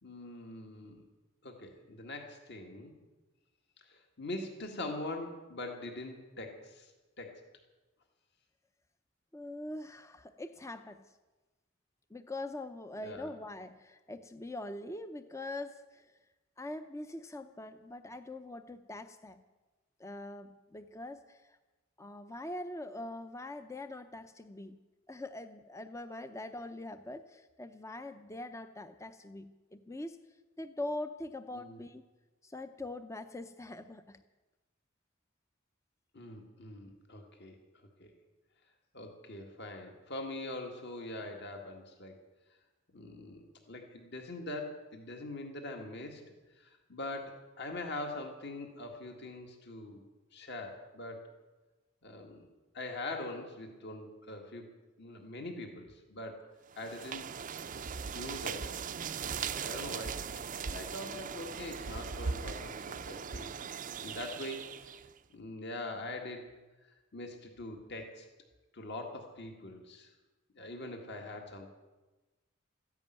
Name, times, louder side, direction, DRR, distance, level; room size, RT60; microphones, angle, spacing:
voice 1, 0.0-1.0 1.4-2.9 3.9-6.9 7.2-7.4 13.0-13.3 31.5-31.8 36.1-38.1 38.9-42.2 42.9-46.2 46.6-50.0 50.3-51.3 52.0-52.5 52.7-54.7 55.0-56.4 56.8-57.3 58.1-58.7 59.2-60.2 60.6-65.0 65.3-66.5 67.1-68.3 68.7-70.1 70.6-71.7, left 2 dB, 55° left, 3 dB, 2.0 m, -43 dB
voice 2, 9.3-11.0 12.1-16.2 16.6-19.4 20.0-21.6 22.0-24.8 25.1-30.2 30.6-32.0 32.4-34.2, left 1 dB, 15° left, 10 dB, 0.5 m, -43 dB
sound 1, 56.7-65.1, right 6 dB, 40° right, 0.5 m, -39 dB
14.0 x 10.5 x 9.3 m, 1.2 s
head